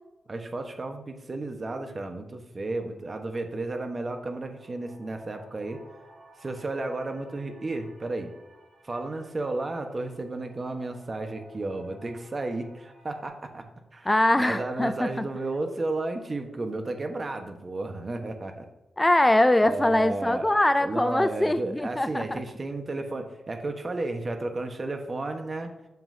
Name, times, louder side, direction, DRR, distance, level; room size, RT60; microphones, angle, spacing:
voice 1, 0.3-5.8 6.4-8.3 8.8-13.6 13.9-14.1 14.4-18.7 19.6-20.5 20.8-25.7, right 2 dB, 35° right, 6 dB, 1.2 m, -33 dB
sound 1, 2.7-13.3, right 1 dB, 55° right, 2.8 m, -56 dB
voice 2, 14.1-15.3 19.0-22.4, left 1 dB, 15° left, 11 dB, 0.3 m, -23 dB
9.3 x 7.1 x 2.7 m, 1.1 s
cardioid pair, 80°, 0 cm